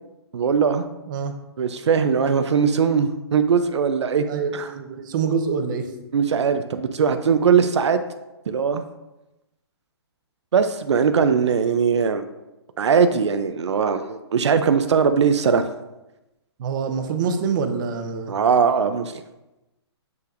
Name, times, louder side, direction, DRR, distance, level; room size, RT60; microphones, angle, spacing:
voice 1, 0.3-0.8 1.6-4.2 4.5-4.7 6.1-8.0 8.5-8.8 10.5-12.2 12.8-15.7 18.3-19.2, right 6 dB, 85° right, 8 dB, 0.5 m, -20 dB
voice 2, 4.3-5.9 16.6-18.3, right 5 dB, 45° right, 7 dB, 0.8 m, -25 dB
7.8 x 5.7 x 2.5 m, 0.99 s
hypercardioid pair, 150°, 14 cm